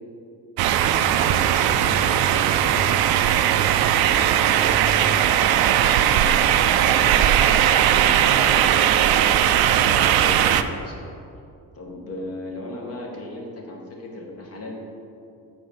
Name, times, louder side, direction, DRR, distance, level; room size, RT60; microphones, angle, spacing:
sound 1, 0.6-10.6, right 10 dB, 80° right, 0.5 m, -18 dB
voice 1, 0.8-1.6 2.0-3.3, equal, 5° right, -2 dB, 0.6 m, -38 dB
voice 2, 5.3-8.9 9.5-11.2 11.7-14.7, left 1 dB, 40° left, 0 dB, 1.4 m, -37 dB
7.8 x 4.4 x 5.4 m, 2.6 s
cardioid pair, 130°, 36 cm